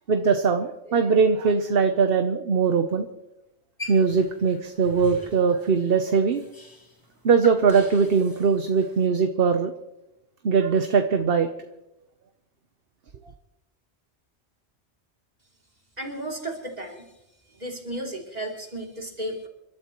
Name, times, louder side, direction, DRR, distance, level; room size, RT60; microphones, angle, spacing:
voice 1, 0.1-3.1 3.9-6.4 7.2-9.7 10.4-11.5, right 5 dB, 60° right, 7 dB, 1.1 m, -21 dB
sound 1, 3.8-9.1, left 3 dB, 20° left, 1.6 m, -43 dB
voice 2, 16.0-17.1 17.5-19.5, right 1 dB, 35° right, -1 dB, 3.2 m, -34 dB
28.5 x 12.5 x 3.1 m, 0.93 s
omnidirectional pair, 1.2 m